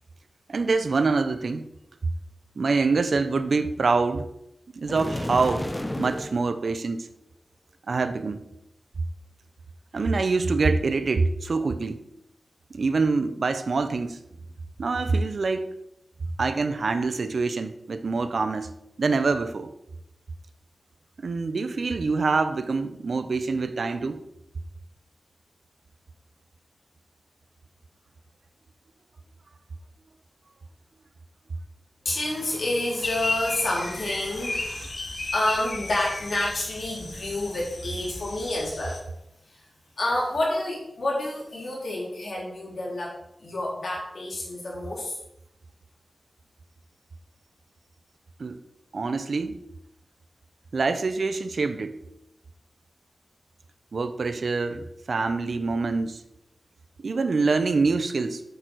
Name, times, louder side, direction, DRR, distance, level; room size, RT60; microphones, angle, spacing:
voice 1, 0.5-1.7 2.6-4.3 4.7-5.7 6.0-7.1 7.9-8.4 9.9-12.0 12.7-14.2 14.8-15.7 16.4-19.7 21.2-24.2 48.4-48.6 48.9-49.6 50.7-52.0 53.9-56.2 57.0-58.4, right 4 dB, 70° right, 0.7 m, -25 dB
sound 1, 4.8-6.4, left 1 dB, 20° left, 0.8 m, -31 dB
voice 2, 32.0-39.0 39.5-39.6 40.0-43.1 43.4-45.2, left 1 dB, 70° left, 3.9 m, -29 dB
sound 2, 33.0-39.0, left 2 dB, 55° left, 1.6 m, -34 dB
8.5 x 6.9 x 4.6 m
cardioid pair, 50°, 0 cm